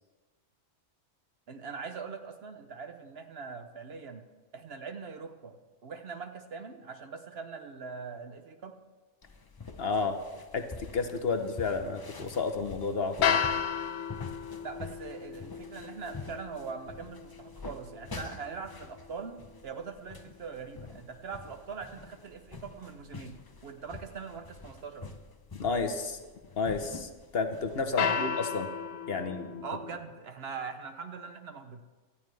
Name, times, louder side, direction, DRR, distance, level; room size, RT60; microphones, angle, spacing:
voice 1, 1.5-4.2 4.5-8.8 14.6-23.4 23.6-25.1 28.0-28.3 29.2-29.3 29.6-31.8, right 5 dB, 55° right, 8 dB, 1.0 m, -42 dB
sound 1, 9.2-28.0, left 4 dB, 30° left, 0.5 m, -47 dB
voice 2, 9.8-10.2 10.5-13.4 25.6-26.2 26.6-28.7 29.1-29.6, left 4 dB, 55° left, 7 dB, 1.1 m, -31 dB
sound 2, 13.2-19.4 28.0-29.9, left 7 dB, 85° left, 1.2 m, -34 dB
18.0 x 12.5 x 3.3 m, 1.3 s
omnidirectional pair, 1.3 m